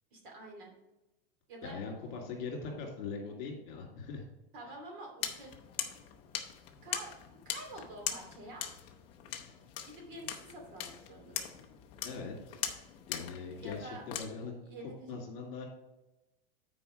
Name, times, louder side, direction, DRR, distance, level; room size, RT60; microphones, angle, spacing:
voice 1, 0.1-0.7 1.5-1.8 4.5-5.6 6.8-8.7 9.8-11.6 13.6-14.0 14.6-15.1, right 1 dB, 55° right, 1 dB, 2.5 m, -48 dB
voice 2, 1.6-4.2 12.0-12.7 13.1-14.6 15.1-15.7, left 4 dB, 45° left, 0 dB, 2.6 m, -41 dB
sound 1, 5.2-14.3, left 10 dB, 20° left, 0.5 m, -41 dB
9.0 x 4.6 x 5.0 m, 1.0 s
supercardioid pair, 175°, 30 cm